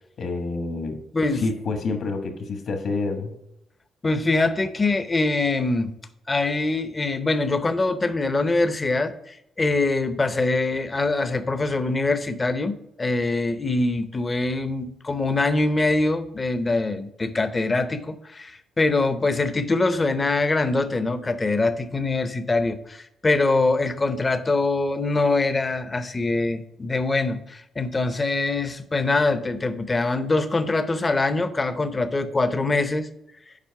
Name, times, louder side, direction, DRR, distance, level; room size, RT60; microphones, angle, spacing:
voice 1, 0.2-1.0 1.3-3.3, left 3 dB, 60° left, 5 dB, 1.4 m, -28 dB
voice 2, 1.1-1.4 4.0-5.9 6.3-33.1, left 3 dB, 25° left, 10 dB, 0.7 m, -23 dB
7.4 x 5.0 x 4.7 m, 0.79 s
cardioid pair, 90°, 0 cm